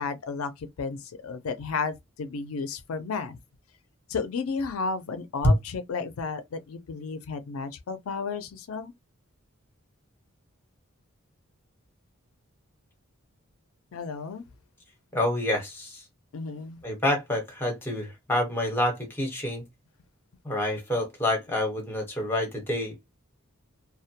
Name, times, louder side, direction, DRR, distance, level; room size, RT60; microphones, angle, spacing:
voice 1, 0.0-3.4 4.1-8.9 13.9-14.4 16.3-16.8, left 4 dB, 80° left, 0.4 m, -33 dB
voice 2, 15.1-16.0 16.8-19.6 20.4-23.0, left 1 dB, 10° left, 1.0 m, -27 dB
2.2 x 2.1 x 2.7 m
head